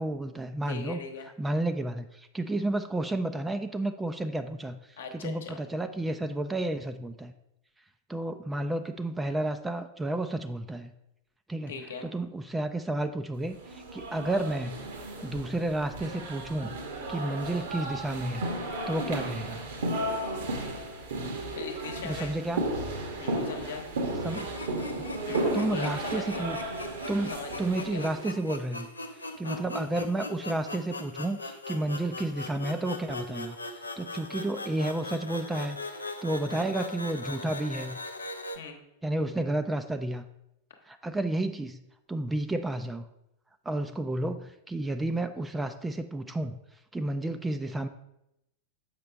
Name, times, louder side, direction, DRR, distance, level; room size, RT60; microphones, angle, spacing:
voice 1, 0.0-1.0 1.4-4.8 5.2-7.3 8.1-10.9 11.5-11.7 12.0-14.8 15.2-16.7 17.1-18.5 18.9-19.6 22.0-22.6 24.2-24.5 25.0-25.1 25.5-26.6 27.1-27.3 27.6-28.9 29.4-38.0 39.0-40.2 40.9-41.8 42.1-43.0 43.7-46.6 46.9-47.9, right 1 dB, 10° right, 8 dB, 0.4 m, -31 dB
voice 2, 0.6-1.3 5.0-5.6 11.7-12.1 21.6-22.3 23.2-23.8 25.2-26.5 27.3-28.1 29.4-29.7 38.5-38.8, left 5 dB, 65° left, 4 dB, 1.0 m, -40 dB
sound 1, 13.6-28.3, right 2 dB, 60° right, 1.2 m, -34 dB
sound 2, 24.2-38.6, left 2 dB, 80° left, 0.5 m, -40 dB
7.2 x 5.7 x 3.3 m, 0.83 s
figure-of-eight pair, 90°, 0 cm